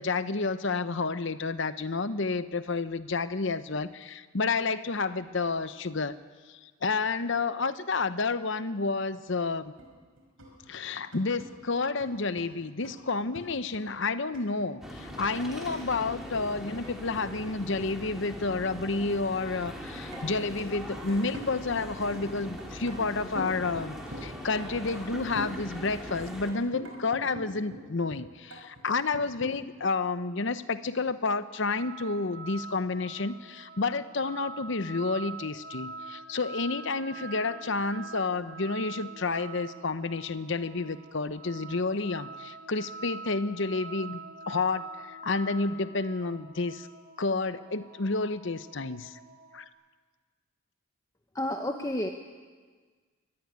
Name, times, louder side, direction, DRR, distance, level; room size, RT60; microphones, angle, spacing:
voice 1, 0.0-6.2 6.5-9.7 10.7-44.2 44.5-46.9 47.2-49.1 49.5-49.6, left 3 dB, 60° left, 13 dB, 0.8 m, -30 dB
sound 1, 9.8-9.9 10.2-15.8 16.1-17.8 19.6-19.8 20.1-21.9 22.1-22.3 22.6-24.3 24.6-28.2 28.5-29.5, equal, 80° right, 5.0 m, -44 dB
sound 2, 14.8-26.5, equal, ahead, 3.1 m, -41 dB
sound 3, 31.5-49.7, right 3 dB, 45° right, 1.6 m, -45 dB
voice 2, 51.3-52.1, left 1 dB, 15° left, 4 dB, 0.9 m, -30 dB
24.5 x 14.5 x 9.7 m, 1.5 s
head